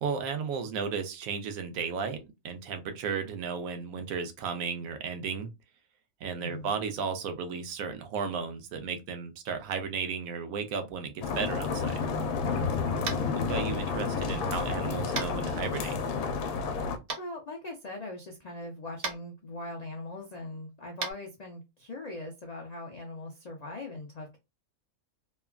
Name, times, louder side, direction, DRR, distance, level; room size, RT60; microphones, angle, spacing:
voice 1, 0.0-5.5 6.2-12.0 13.3-15.9, right 6 dB, 75° right, 1.0 m, -34 dB
voice 2, 6.4-6.7 12.9-13.8 17.2-24.4, left 2 dB, 75° left, 0.3 m, -41 dB
sound 1, 11.2-17.0, left 5 dB, 90° left, 1.1 m, -30 dB
Tap, 13.0-13.3 15.1-15.3 17.1-17.2 19.0-19.2 21.0-21.1, right 4 dB, 50° right, 0.8 m, -33 dB
3.2 x 2.2 x 2.2 m
omnidirectional pair, 1.5 m